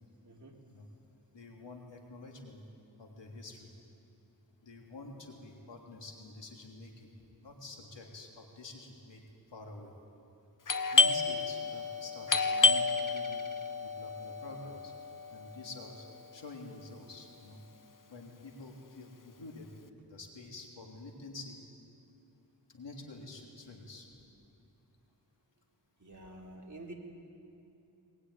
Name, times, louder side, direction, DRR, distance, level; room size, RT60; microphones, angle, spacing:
voice 1, 0.2-0.6 26.0-26.9, right 1 dB, 45° right, -1 dB, 3.8 m, -48 dB
voice 2, 1.3-2.6 3.0-3.7 4.6-7.1 7.4-9.2 9.5-9.9 10.9-13.4 13.8-14.9 15.3-16.1 16.3-17.6 18.1-19.7 20.1-21.6 22.7-24.1, left 2 dB, 90° left, 1 dB, 3.3 m, -48 dB
Doorbell, 10.7-16.1, left 4 dB, 50° left, 1.1 m, -30 dB
21.5 x 20.5 x 9.8 m, 2.7 s
wide cardioid pair, 65°, 42 cm